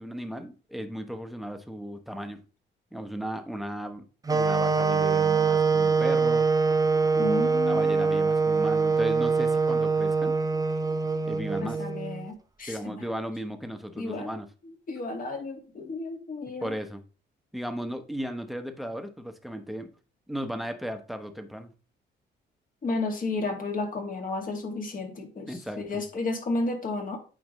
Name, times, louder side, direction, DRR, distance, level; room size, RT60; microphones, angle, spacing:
voice 1, 0.0-2.4 2.9-4.0 4.3-6.5 7.1-10.4 11.2-11.8 12.7-14.5 16.6-17.0 17.5-19.9 20.3-21.7 25.5-26.0, equal, ahead, 1.1 m, -35 dB
sound 1, 4.3-12.3, right 4 dB, 20° right, 0.7 m, -24 dB
voice 2, 7.2-8.2 11.6-13.0 14.0-14.3 14.6-16.7 22.8-27.2, left 3 dB, 45° left, 2.1 m, -32 dB
8.7 x 5.2 x 3.1 m
cardioid pair, 90°, 20 cm